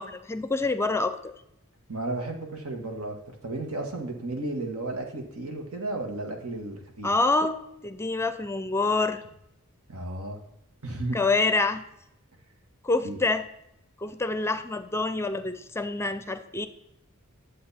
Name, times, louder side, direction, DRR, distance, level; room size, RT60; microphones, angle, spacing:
voice 1, 0.0-1.3 7.0-9.2 11.1-11.8 12.8-13.5 14.0-16.7, left 3 dB, 10° left, 11 dB, 0.5 m, -26 dB
voice 2, 1.9-7.1 9.9-10.4 10.8-11.2 13.0-13.2, right 2 dB, 85° right, 3 dB, 1.9 m, -33 dB
10.5 x 7.6 x 4.3 m, 0.82 s
head